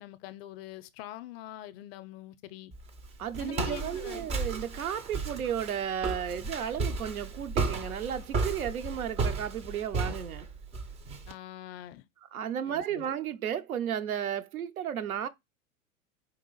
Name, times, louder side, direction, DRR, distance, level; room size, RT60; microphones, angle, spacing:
voice 1, 0.0-2.7 3.4-4.2 11.3-12.0 12.6-13.0, left 14 dB, 45° left, 0.5 m, -44 dB
Walk footsteps, 2.7-11.3, right 4 dB, 15° right, 0.4 m, -34 dB
voice 2, 3.2-10.5 12.3-15.3, right 9 dB, 80° right, 0.7 m, -34 dB
4.4 x 2.5 x 3.8 m
figure-of-eight pair, 95°, 43 cm